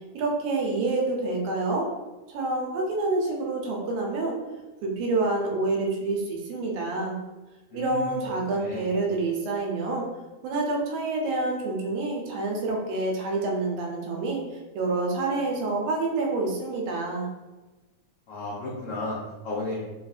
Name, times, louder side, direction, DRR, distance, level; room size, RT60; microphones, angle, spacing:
voice 1, 0.1-1.9 2.3-4.3 4.8-7.2 7.7-10.1 10.4-14.4 14.7-17.3, right 3 dB, 80° right, -1 dB, 2.1 m, -27 dB
voice 2, 7.7-8.1 8.4-8.8 18.3-19.2 19.4-19.8, left 2 dB, 80° left, -8 dB, 1.3 m, -33 dB
5.3 x 2.5 x 2.4 m, 1.2 s
omnidirectional pair, 3.6 m